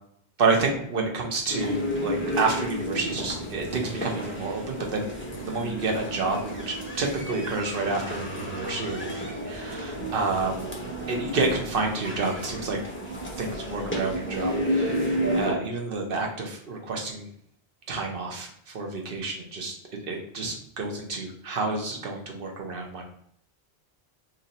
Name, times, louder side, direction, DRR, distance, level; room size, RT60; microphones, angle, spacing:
voice 1, 0.4-5.1 5.4-10.6 11.1-12.8 13.4-17.3 17.9-18.5 18.7-19.8 20.1-23.0, right 3 dB, 60° right, 2 dB, 0.9 m, -29 dB
sound 1, 1.5-15.5, equal, 15° left, 0.5 m, -32 dB
2.8 x 2.5 x 3.9 m, 0.66 s
omnidirectional pair, 1.1 m